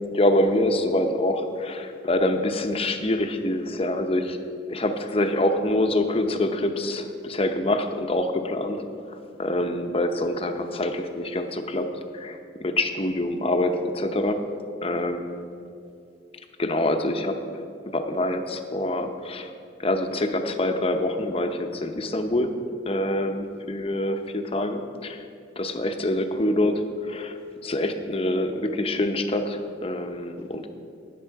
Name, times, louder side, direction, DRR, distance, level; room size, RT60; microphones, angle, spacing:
voice 1, 0.0-4.4 4.7-8.8 9.4-11.9 12.1-14.4 14.8-15.5 16.6-17.4 17.8-19.5 19.8-22.5 22.8-25.2 25.6-27.4 27.6-30.7, left 1 dB, 30° left, 6 dB, 0.7 m, -25 dB
18.5 x 6.8 x 4.7 m, 2.5 s
head